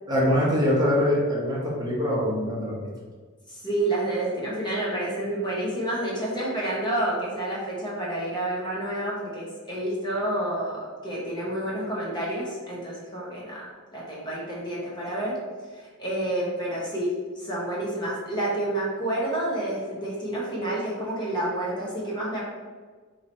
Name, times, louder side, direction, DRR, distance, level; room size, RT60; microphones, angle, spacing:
voice 1, 0.1-2.8, left 1 dB, 20° right, -6 dB, 0.9 m, -23 dB
voice 2, 3.5-15.4 15.7-22.4, right 1 dB, 20° left, -5 dB, 0.8 m, -29 dB
2.9 x 2.7 x 4.2 m, 1.5 s
head